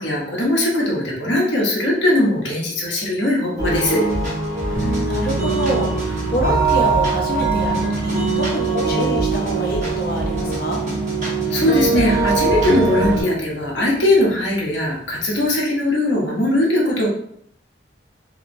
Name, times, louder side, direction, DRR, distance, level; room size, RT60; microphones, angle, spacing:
voice 1, 0.0-4.0 11.5-17.1, left 1 dB, 80° left, -3 dB, 0.8 m, -19 dB
sound 1, 3.6-13.2, right 3 dB, 45° right, 0.9 m, -21 dB
voice 2, 4.7-10.8, equal, 55° left, -1 dB, 0.6 m, -26 dB
sound 2, 4.7-15.6, equal, 10° right, 0.5 m, -34 dB
2.8 x 2.0 x 2.6 m, 0.70 s
head